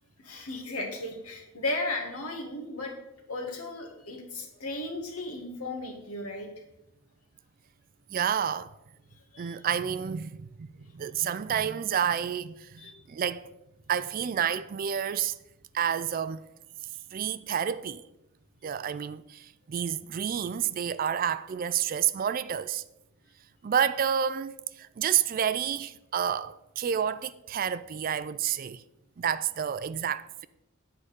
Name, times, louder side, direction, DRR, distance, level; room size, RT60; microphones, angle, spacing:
voice 1, 0.2-2.9 3.3-6.5 9.3-9.7 12.8-12.9, left 2 dB, 85° left, 1.8 m, -35 dB
voice 2, 8.1-8.7 9.4-13.5 13.9-15.4 15.7-16.4 17.1-18.0 18.6-22.8 23.6-28.8 29.2-30.5, right 8 dB, 40° right, 0.3 m, -29 dB
8.8 x 4.9 x 6.7 m
head